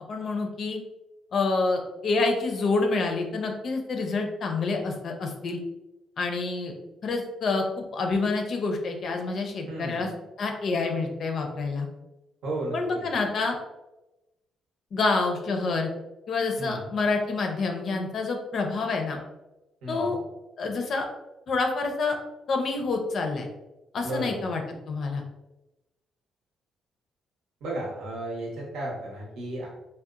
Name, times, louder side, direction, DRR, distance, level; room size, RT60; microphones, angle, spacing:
voice 1, 0.1-0.8 1.3-5.6 6.2-6.7 7.0-7.6 7.9-10.1 10.4-11.9 12.7-13.6 14.9-15.9 16.3-19.2 19.9-20.2 20.6-21.1 21.5-22.2 22.5-23.5 23.9-25.2, left 3 dB, 60° left, 4 dB, 0.4 m, -27 dB
voice 2, 9.7-10.1 12.4-13.1 16.6-16.9 19.8-20.2 24.0-24.4 27.6-29.7, right 1 dB, 85° right, -3 dB, 0.8 m, -34 dB
2.8 x 2.0 x 2.4 m, 0.99 s
cardioid pair, 90°, 0 cm